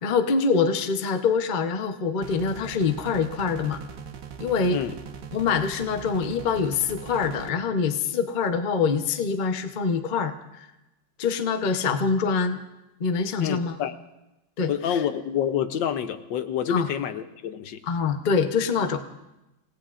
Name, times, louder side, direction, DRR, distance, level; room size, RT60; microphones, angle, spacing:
voice 1, 0.0-3.8 4.4-4.8 5.3-10.7 11.2-12.6 13.0-13.8 14.6-15.0 16.7-16.9 17.9-19.1, left 5 dB, 45° left, 7 dB, 0.6 m, -25 dB
sound 1, 2.2-7.5, right 7 dB, 65° right, 1.6 m, -40 dB
voice 2, 13.4-14.0 14.7-17.8, left 9 dB, 75° left, 10 dB, 1.4 m, -28 dB
28.5 x 17.5 x 2.5 m, 0.95 s
omnidirectional pair, 2.1 m